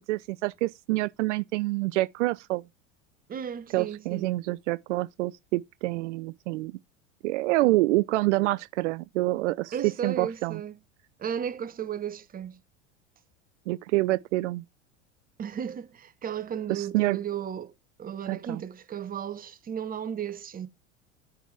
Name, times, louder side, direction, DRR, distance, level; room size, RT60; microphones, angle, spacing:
voice 1, 0.0-2.6 3.7-6.7 7.2-9.7 10.0-10.6 13.7-14.6 16.7-17.2 18.3-18.6, right 20 dB, 70° right, 0.5 m, -27 dB
voice 2, 3.3-4.4 9.7-10.8 11.2-12.6 15.4-17.7 18.0-20.7, right 8 dB, 25° right, 0.9 m, -34 dB
9.1 x 3.5 x 4.6 m
hypercardioid pair, 85°, 37 cm